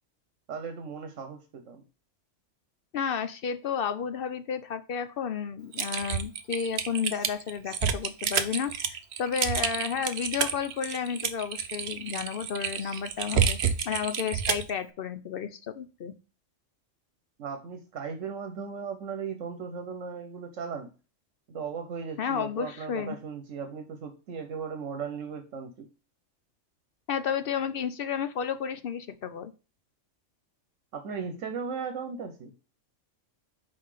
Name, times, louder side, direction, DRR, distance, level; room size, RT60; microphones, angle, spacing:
voice 1, 0.5-1.8 17.4-20.9 21.5-25.9 30.9-32.5, right 6 dB, 75° right, 7 dB, 1.2 m, -37 dB
voice 2, 2.9-13.6 13.8-16.1 22.2-23.2 27.1-29.5, left 7 dB, 60° left, 10 dB, 0.7 m, -32 dB
Typing, 5.7-14.7, right 7 dB, 60° right, 0.9 m, -29 dB
5.5 x 4.6 x 4.9 m, 0.34 s
omnidirectional pair, 1.3 m